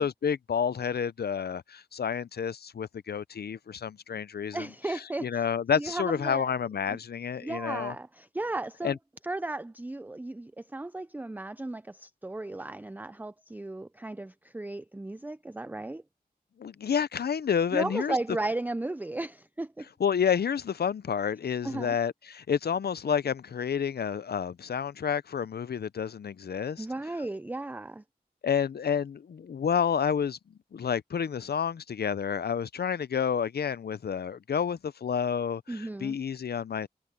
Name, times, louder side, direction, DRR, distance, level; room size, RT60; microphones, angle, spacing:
voice 1, 0.0-7.9 8.8-9.0 16.6-18.2 20.0-26.9 28.4-30.4 30.7-36.9, left 7 dB, 80° left, 0.6 m, -29 dB
voice 2, 4.5-5.4 5.7-6.5 6.9-7.0 7.4-9.0 9.2-16.0 17.7-19.9 21.6-22.0 26.8-28.0 35.7-36.2, right 2 dB, 10° right, 0.4 m, -35 dB
wide cardioid pair, 55°, 16 cm